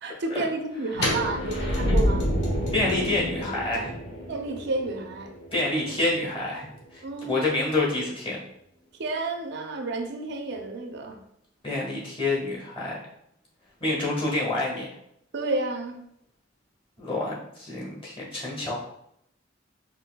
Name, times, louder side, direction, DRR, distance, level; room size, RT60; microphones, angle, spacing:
voice 1, 0.0-2.3 4.3-5.3 7.0-7.4 9.0-11.2 15.3-15.9, right 2 dB, 60° right, 4 dB, 0.5 m, -31 dB
sound 1, 0.9-6.8, equal, 60° left, 1.3 m, -28 dB
voice 2, 2.7-3.9 5.5-8.4 11.6-13.0 13.8-14.9 17.0-18.7, left 2 dB, 30° left, -4 dB, 1.3 m, -28 dB
5.5 x 2.5 x 2.2 m, 0.74 s
head